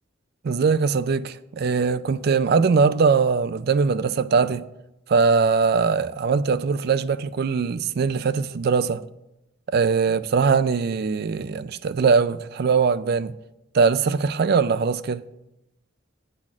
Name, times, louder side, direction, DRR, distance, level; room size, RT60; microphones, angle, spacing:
voice 1, 0.4-4.6 5.1-9.0 9.7-13.3 13.7-15.2, right 5 dB, 50° right, 0.4 m, -21 dB
8.8 x 4.2 x 7.2 m
head